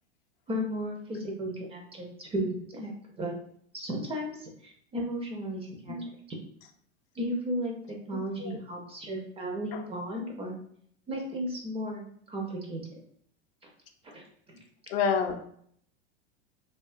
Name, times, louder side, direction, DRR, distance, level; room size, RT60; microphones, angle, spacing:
voice 1, 0.5-3.3 3.7-6.0 6.3-6.4 7.1-10.5 11.1-12.8 14.1-14.6, equal, 20° right, 0 dB, 0.4 m, -35 dB
voice 2, 8.1-8.6 9.7-9.8 14.9-15.3, left 6 dB, 65° left, 5 dB, 0.5 m, -29 dB
2.4 x 2.2 x 2.4 m, 0.63 s
hypercardioid pair, 110°, 33 cm